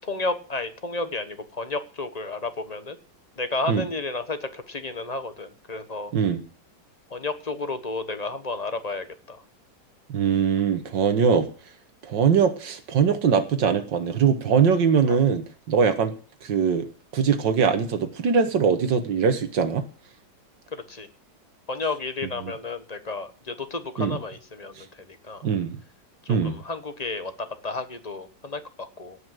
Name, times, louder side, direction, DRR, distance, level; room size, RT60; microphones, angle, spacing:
voice 1, 0.0-3.0 3.4-6.1 7.1-9.4 15.1-15.2 20.7-21.1 21.7-25.5 26.2-29.2, left 3 dB, 25° left, 9 dB, 1.0 m, -32 dB
voice 2, 10.1-11.5 12.0-16.1 16.4-16.9 17.1-19.9 22.4-22.5 24.0-24.2 25.4-25.8 26.3-26.6, right 6 dB, 70° right, 9 dB, 2.1 m, -22 dB
17.5 x 5.8 x 7.8 m, 0.39 s
omnidirectional pair, 2.1 m